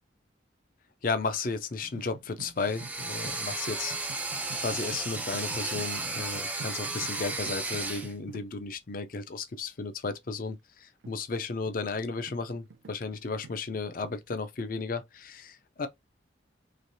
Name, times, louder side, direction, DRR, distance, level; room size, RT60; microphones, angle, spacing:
voice 1, 1.0-15.9, left 4 dB, 50° left, 0.5 m, -34 dB
sound 1, 1.8-8.8 11.0-14.4, right 4 dB, 80° right, 0.5 m, -48 dB
sound 2, 2.6-8.1, right 2 dB, 10° right, 0.5 m, -34 dB
3.2 x 2.9 x 2.7 m
head